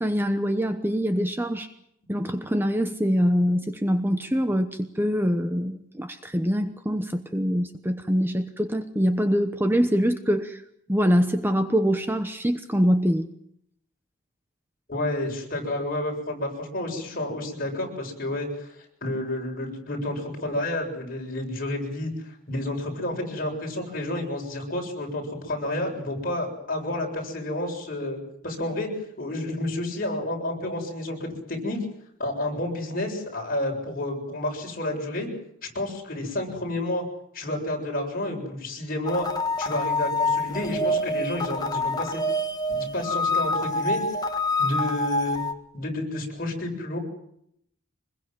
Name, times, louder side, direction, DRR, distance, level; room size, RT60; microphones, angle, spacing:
voice 1, 0.0-1.7 2.1-10.6 10.9-13.3, equal, 10° right, 8 dB, 0.9 m, -24 dB
voice 2, 14.9-18.7 19.0-28.9 29.2-31.8 32.2-35.3 35.7-37.0 37.3-39.3 39.6-42.2 42.7-44.0 44.6-45.4 45.7-47.0, left 1 dB, 45° left, 1 dB, 7.3 m, -30 dB
sound 1, 39.1-45.5, left 2 dB, 20° left, 1.5 m, -26 dB
25.5 x 21.5 x 7.7 m, 0.73 s
head